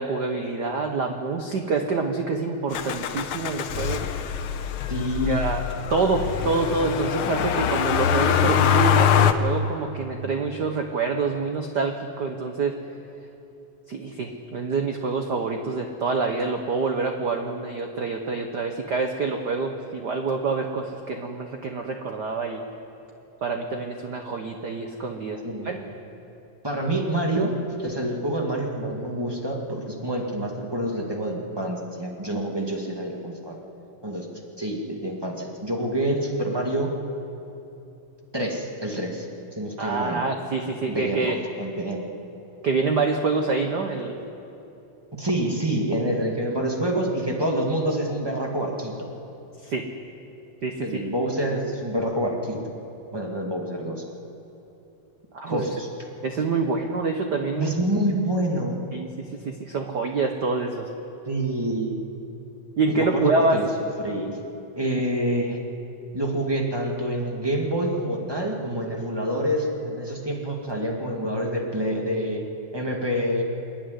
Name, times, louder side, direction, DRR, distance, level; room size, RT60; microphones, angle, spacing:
voice 1, 0.0-4.0 5.3-5.6 5.9-12.8 13.9-22.6 23.4-25.8 39.8-41.4 42.6-44.2 49.6-49.9 50.6-51.0 55.3-55.7 56.2-57.7 58.9-60.9 62.8-63.6, right 4 dB, 85° right, 4 dB, 0.9 m, -26 dB
Motor vehicle (road), 2.7-9.3, left 8 dB, 80° left, 1.2 m, -23 dB
voice 2, 4.9-5.5 25.4-25.9 26.6-27.5 27.8-33.6 34.0-34.3 34.6-36.9 38.3-39.3 39.5-40.2 40.9-42.0 45.1-49.1 50.8-52.7 53.1-54.0 55.5-55.9 57.5-58.8 61.2-61.9 62.9-63.7 64.0-64.4 64.7-65.6 66.1-72.4 72.7-73.4, right 1 dB, 10° right, 0 dB, 1.3 m, -27 dB
27.0 x 10.5 x 9.7 m, 2.9 s
omnidirectional pair, 3.4 m